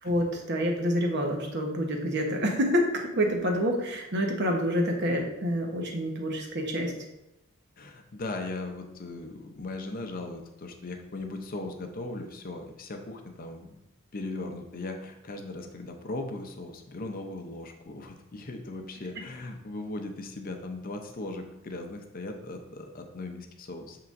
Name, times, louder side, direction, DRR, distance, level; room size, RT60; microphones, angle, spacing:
voice 1, 0.0-6.9, equal, 55° right, 2 dB, 1.1 m, -27 dB
voice 2, 7.8-13.8 14.1-24.0, left 2 dB, 45° left, 5 dB, 0.6 m, -38 dB
6.8 x 5.8 x 2.5 m, 0.93 s
head